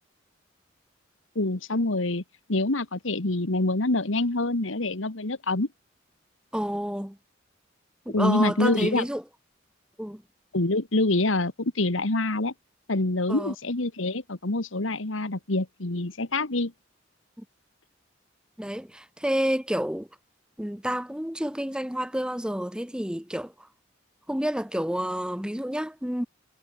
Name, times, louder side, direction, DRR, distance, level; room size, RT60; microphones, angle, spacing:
voice 1, 1.4-2.2 2.5-5.7 8.1-9.0 10.5-12.5 12.9-16.7, left 2 dB, 80° left, 1.8 m, -26 dB
voice 2, 6.5-7.2 8.0-9.2 10.0-10.2 13.3-13.5 17.4-17.5 18.6-20.1 20.6-23.5 24.3-26.3, equal, 5° right, 1.4 m, -29 dB
head